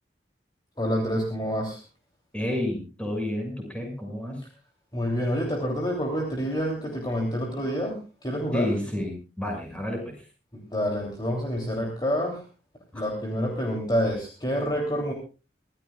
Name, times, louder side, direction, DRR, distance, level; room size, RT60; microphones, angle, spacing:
voice 1, 0.8-1.8 4.9-8.7 10.5-12.4 12.9-15.1, equal, 25° left, 0 dB, 3.2 m, -28 dB
voice 2, 2.3-4.4 8.5-10.1, left 1 dB, 5° left, 1 dB, 6.5 m, -30 dB
25.5 x 14.5 x 2.4 m, 0.32 s
head